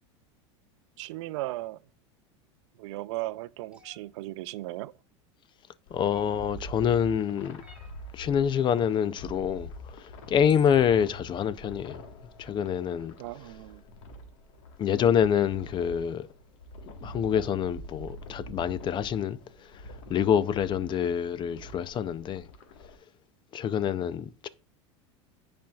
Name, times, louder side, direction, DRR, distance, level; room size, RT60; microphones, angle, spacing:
voice 1, 1.0-1.8 2.8-4.9 13.2-13.8 24.0-24.1, right 18 dB, 70° right, 0.4 m, -36 dB
sound 1, 3.7-4.0 6.1-6.5 7.6-8.0 9.7-9.8 10.4-10.8, equal, 5° right, 1.6 m, -55 dB
sound 2, 5.9-23.0, equal, 75° left, 1.4 m, -46 dB
voice 2, 5.9-7.6 8.1-12.0 12.4-13.1 14.8-16.3 17.0-19.4 20.1-22.5 23.5-24.5, left 8 dB, 30° left, 0.4 m, -26 dB
10.0 x 4.3 x 2.3 m
hypercardioid pair, 105°, 16 cm